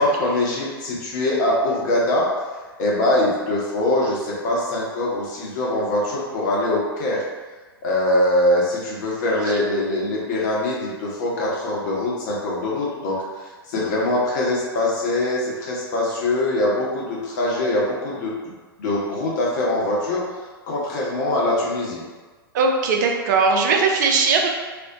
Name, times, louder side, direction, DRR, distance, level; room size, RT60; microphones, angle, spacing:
voice 1, 0.0-2.3 2.8-7.2 7.8-13.2 13.7-18.3 18.8-20.2 20.7-22.0, left 1 dB, 45° left, -4 dB, 0.8 m, -22 dB
voice 2, 22.5-24.5, right 4 dB, 50° right, 2 dB, 0.4 m, -19 dB
2.5 x 2.0 x 2.7 m, 1.3 s
figure-of-eight pair, 100°, 13 cm